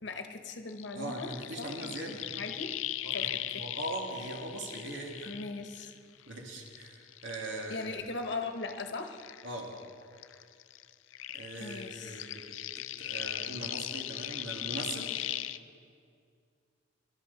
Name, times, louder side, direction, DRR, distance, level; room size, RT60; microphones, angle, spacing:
voice 1, 0.0-1.3 1.6-2.8 3.1-3.7 5.2-5.9 7.7-9.2 11.6-12.3, left 3 dB, 60° left, 6 dB, 1.0 m, -39 dB
sound 1, 0.7-6.2 6.6-9.9 10.2-15.6, left 13 dB, 80° left, 0.4 m, -39 dB
voice 2, 0.9-2.4 3.0-5.3 6.3-7.9 9.4-9.7 11.3-15.1, right 1 dB, 70° right, -1 dB, 2.3 m, -40 dB
22.0 x 12.0 x 4.1 m, 2.3 s
head